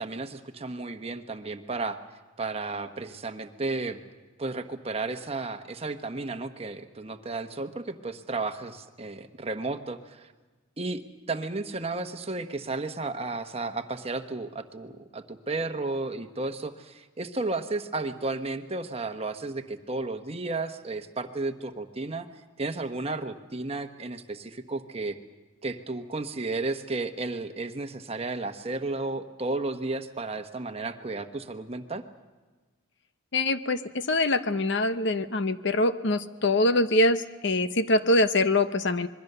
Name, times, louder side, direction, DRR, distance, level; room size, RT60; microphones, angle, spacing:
voice 1, 0.0-2.0 2.4-4.0 4.4-10.3 10.8-11.0 11.3-22.3 22.6-25.2 25.6-32.0, right 3 dB, 30° right, 7 dB, 1.1 m, -33 dB
voice 2, 33.3-33.8 34.1-39.1, left 2 dB, 55° left, 11 dB, 0.9 m, -24 dB
26.5 x 22.0 x 6.8 m, 1.3 s
head